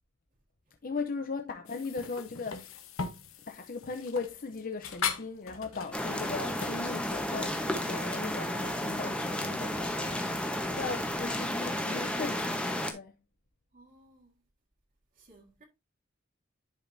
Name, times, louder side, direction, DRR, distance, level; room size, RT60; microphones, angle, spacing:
voice 1, 0.8-2.8 3.5-13.1, left 4 dB, 45° left, 0.6 m, -38 dB
sound 1, 1.7-8.5, left 6 dB, 80° left, 1.1 m, -40 dB
sound 2, 5.9-12.9, left 1 dB, 5° left, 1.0 m, -32 dB
voice 2, 13.7-14.3 15.2-15.6, right 2 dB, 40° right, 1.8 m, -58 dB
10.5 x 5.2 x 2.6 m
head